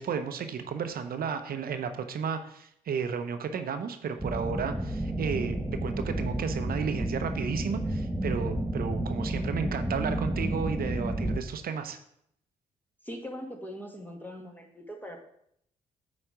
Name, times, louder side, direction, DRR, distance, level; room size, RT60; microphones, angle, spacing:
voice 1, 0.0-12.0, right 6 dB, 55° right, 8 dB, 0.8 m, -33 dB
sound 1, 4.2-11.4, right 1 dB, 5° right, 1.0 m, -31 dB
voice 2, 13.0-15.2, equal, 10° left, 2 dB, 1.9 m, -41 dB
8.8 x 4.3 x 5.1 m, 0.71 s
hypercardioid pair, 45°, 18 cm